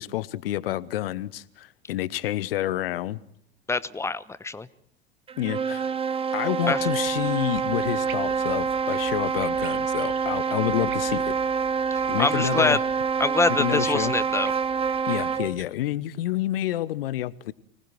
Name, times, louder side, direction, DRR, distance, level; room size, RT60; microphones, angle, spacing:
voice 1, 0.0-3.2 5.4-5.9 6.3-11.3 12.1-12.8 13.6-14.1 15.1-17.5, left 14 dB, 60° left, 1.0 m, -28 dB
voice 2, 3.7-4.7 6.7-6.8 11.9-12.8 13.2-14.5, left 3 dB, 10° left, 1.0 m, -25 dB
sound 1, 5.3-15.6, right 6 dB, 20° right, 1.0 m, -26 dB
sound 2, 6.8-15.6, right 9 dB, 40° right, 2.4 m, -47 dB
25.5 x 19.0 x 9.0 m
figure-of-eight pair, 75°, 32 cm